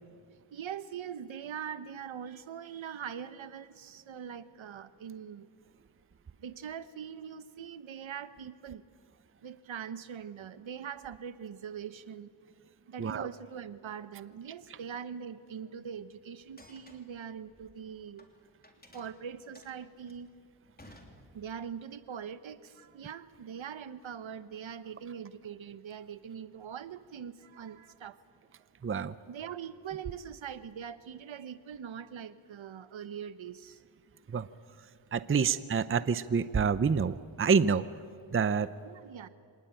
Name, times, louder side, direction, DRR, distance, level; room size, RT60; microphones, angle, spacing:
voice 1, 0.5-5.5 6.4-8.8 9.4-12.3 12.9-18.2 18.9-20.3 21.3-28.2 29.3-33.8 35.4-35.6 38.8-39.3, right 8 dB, 70° right, 14 dB, 1.1 m, -42 dB
sound 1, 16.4-18.3 18.6-21.7, left 1 dB, 20° left, 3.3 m, -56 dB
voice 2, 28.8-29.1 34.3-34.5 35.1-37.9 38.3-38.7, right 5 dB, 25° right, 14 dB, 0.6 m, -27 dB
25.5 x 19.5 x 9.1 m, 2.2 s
wide cardioid pair, 90°, 48 cm